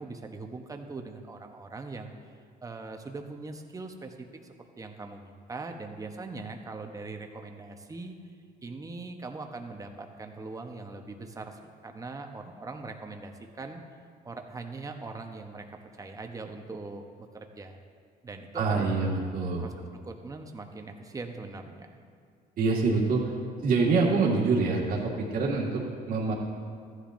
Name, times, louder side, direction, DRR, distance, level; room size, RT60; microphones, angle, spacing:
voice 1, 0.0-2.1 2.6-8.1 8.6-13.8 14.2-15.6 16.0-17.8 18.2-19.1 19.6-19.7 20.0-22.0, right 3 dB, 20° right, 4 dB, 0.9 m, -41 dB
voice 2, 18.5-19.6 22.6-23.3 23.6-26.3, right 4 dB, 55° right, -4 dB, 1.8 m, -26 dB
14.5 x 10.0 x 2.6 m, 2.2 s
cardioid pair, 110°, 17 cm